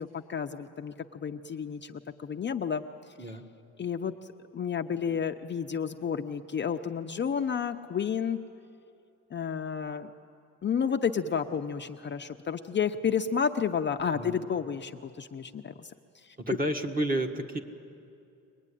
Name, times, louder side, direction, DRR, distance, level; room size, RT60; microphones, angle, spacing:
voice 1, 0.0-2.8 3.2-3.3 3.8-4.1 4.5-8.4 9.3-10.1 10.6-15.9 16.2-16.6, left 7 dB, 30° left, 6 dB, 0.6 m, -31 dB
voice 2, 16.4-17.6, right 1 dB, 25° right, 5 dB, 1.6 m, -30 dB
24.0 x 20.5 x 9.9 m, 2.6 s
cardioid pair, 130°, 36 cm